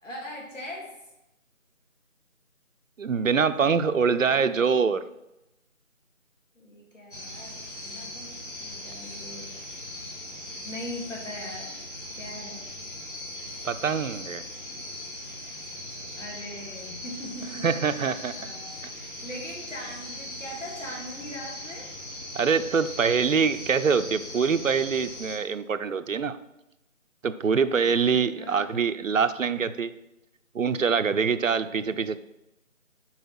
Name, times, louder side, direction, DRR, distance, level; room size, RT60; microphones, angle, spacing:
voice 1, 0.0-0.9 3.3-4.7 6.5-9.5 10.6-11.8 12.1-12.6 16.2-21.9 28.4-28.8, left 1 dB, 65° left, -2 dB, 2.7 m, -41 dB
voice 2, 3.0-5.0 13.6-14.4 17.6-18.3 22.3-26.4 27.2-29.9 30.5-32.2, right 5 dB, 75° right, 12 dB, 0.6 m, -24 dB
sound 1, 7.1-25.4, left 1 dB, 40° left, 2.3 m, -39 dB
5.6 x 4.6 x 6.1 m, 0.90 s
figure-of-eight pair, 170°, 40 cm